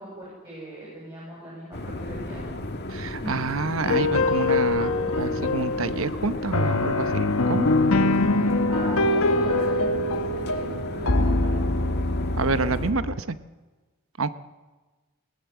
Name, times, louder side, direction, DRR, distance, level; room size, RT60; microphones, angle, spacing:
voice 1, 0.0-2.5 3.2-3.4 8.7-11.5, equal, 20° right, -5 dB, 7.5 m, -39 dB
sound 1, 1.7-12.9, left 1 dB, 50° left, 2.0 m, -34 dB
voice 2, 2.9-7.7 12.4-13.4 14.2-14.3, right 3 dB, 65° right, 12 dB, 1.0 m, -28 dB
sound 2, 3.8-13.2, left 2 dB, 75° left, 1.2 m, -24 dB
21.0 x 18.0 x 7.2 m, 1.3 s
head